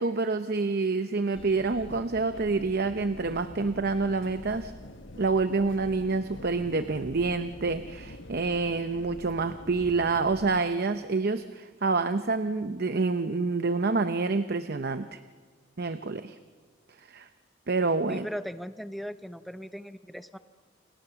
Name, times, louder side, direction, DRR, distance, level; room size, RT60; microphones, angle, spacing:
voice 1, 0.0-4.7 5.2-15.2 15.8-16.4 17.1-17.3 17.7-18.3, right 3 dB, 50° right, 10 dB, 0.7 m, -27 dB
sound 1, 1.3-10.6, left 1 dB, 65° left, 1.5 m, -46 dB
voice 2, 18.1-20.4, equal, ahead, 11 dB, 0.7 m, -38 dB
29.0 x 27.0 x 7.0 m, 1.5 s
head